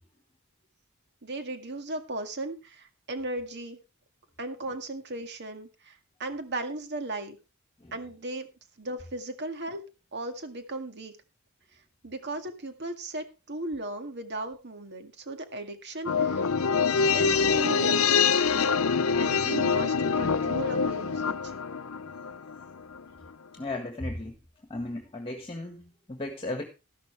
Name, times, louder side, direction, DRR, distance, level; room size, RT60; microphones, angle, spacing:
voice 1, 1.2-3.8 4.4-7.4 7.9-8.5 8.8-9.8 10.1-11.1 12.0-16.4 17.1-18.7 19.2-21.5, right 2 dB, 55° right, 7 dB, 2.0 m, -36 dB
sound 1, 16.1-22.6 22.9-23.0, left 5 dB, 75° left, 0.7 m, -25 dB
voice 2, 23.5-24.4 24.7-26.6, left 2 dB, 25° left, 4 dB, 1.6 m, -35 dB
13.0 x 12.0 x 3.3 m, 0.29 s
head